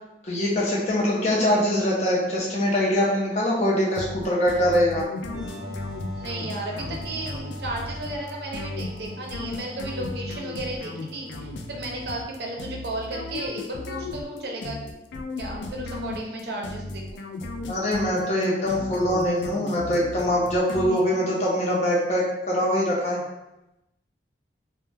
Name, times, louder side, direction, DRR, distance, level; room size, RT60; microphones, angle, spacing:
voice 1, 0.2-5.1 17.7-23.2, equal, 40° left, -5 dB, 0.6 m, -23 dB
sound 1, 4.0-21.4, left 2 dB, 90° left, 0.3 m, -36 dB
sound 2, 5.3-12.7, equal, 15° right, 0.7 m, -40 dB
voice 2, 6.1-14.8 15.4-17.3, right 2 dB, 65° right, -1 dB, 0.5 m, -34 dB
2.2 x 2.0 x 3.2 m, 0.95 s
head